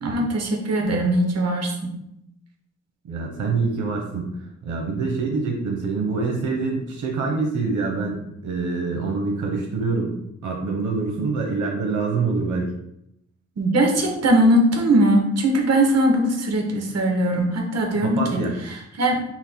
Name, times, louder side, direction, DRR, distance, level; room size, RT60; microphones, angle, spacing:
voice 1, 0.0-1.9 13.6-18.4 18.7-19.2, right 1 dB, 60° right, 2 dB, 1.0 m, -20 dB
voice 2, 3.0-4.3 4.6-10.2 10.4-12.7 18.0-18.6, right 4 dB, 90° right, 1 dB, 0.8 m, -25 dB
5.8 x 2.1 x 4.4 m, 0.79 s
wide cardioid pair, 105°, 29 cm